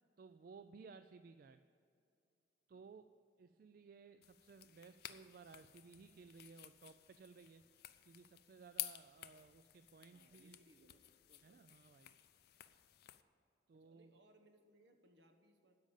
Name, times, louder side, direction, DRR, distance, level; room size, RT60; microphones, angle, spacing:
voice 1, 0.2-1.6 2.7-3.0 3.4-7.6 8.0-10.6 11.4-12.2 13.7-14.1, right 5 dB, 50° right, 10 dB, 0.3 m, -59 dB
sound 1, 4.2-13.2, left 14 dB, 60° left, 0.5 m, -53 dB
voice 2, 10.1-11.0 11.3-11.6 13.7-15.8, right 1 dB, 70° right, 4 dB, 1.2 m, -69 dB
12.5 x 5.2 x 8.9 m, 2.5 s
head